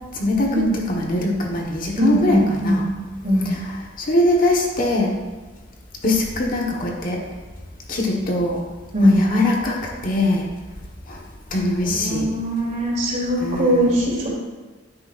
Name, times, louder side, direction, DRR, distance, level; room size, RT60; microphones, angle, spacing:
voice 1, 0.1-2.9 3.4-5.1 6.0-7.2 7.9-8.6 9.0-10.5 11.1-11.2 11.5-12.3 13.4-14.0, left 1 dB, 45° left, -1 dB, 1.3 m, -22 dB
voice 2, 2.0-2.8 3.2-3.5 8.9-9.2 11.8-14.3, equal, 40° right, -4 dB, 3.2 m, -20 dB
12.5 x 10.0 x 2.6 m, 1.3 s
head